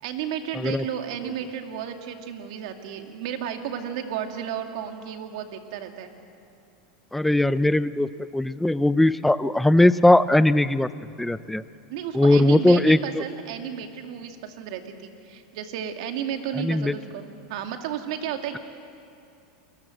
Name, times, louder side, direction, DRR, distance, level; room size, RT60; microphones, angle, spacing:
voice 1, 0.0-6.1 11.9-17.2 17.5-18.6, right 9 dB, 65° right, 5 dB, 2.4 m, -33 dB
voice 2, 0.5-0.8 7.1-10.9 11.2-11.6 12.1-13.2 16.6-16.9, left 1 dB, 5° left, 15 dB, 0.5 m, -19 dB
29.0 x 21.5 x 7.9 m, 2.6 s
supercardioid pair, 135°, 3 cm